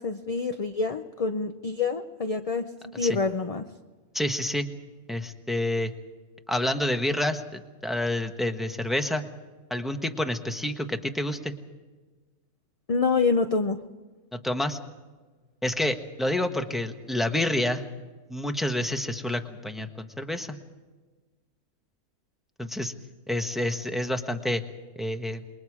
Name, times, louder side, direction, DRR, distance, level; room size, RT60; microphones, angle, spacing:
voice 1, 0.0-2.7 2.9-3.7 12.9-13.8, left 4 dB, 40° left, 6 dB, 0.5 m, -26 dB
voice 2, 4.1-4.7 5.1-5.9 6.5-9.3 9.7-11.5 14.4-14.8 15.6-17.8 18.3-20.6 22.6-22.9 23.3-24.6 25.0-25.4, left 1 dB, ahead, 5 dB, 1.1 m, -28 dB
27.5 x 22.0 x 4.9 m, 1.3 s
omnidirectional pair, 1.5 m